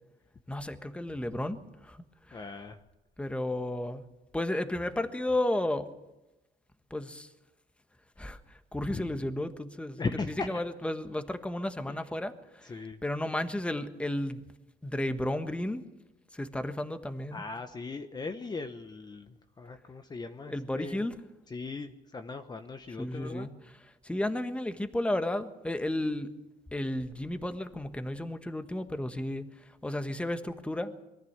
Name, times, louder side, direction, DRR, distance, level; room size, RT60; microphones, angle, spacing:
voice 1, 0.5-2.0 3.2-4.0 4.3-5.9 6.9-7.3 8.2-8.4 8.7-10.0 10.5-12.7 13.0-14.4 14.8-15.8 16.3-17.4 20.4-21.1 23.0-23.5 24.0-26.3 26.7-29.5 29.8-30.9, left 1 dB, 5° left, 8 dB, 1.4 m, -33 dB
voice 2, 2.3-2.8 8.9-9.0 10.0-10.6 11.9-12.0 12.6-13.0 17.3-21.0 21.5-23.5, left 4 dB, 25° left, 7 dB, 1.1 m, -38 dB
22.5 x 14.0 x 8.1 m, 1.0 s
cardioid pair, 110°, 17 cm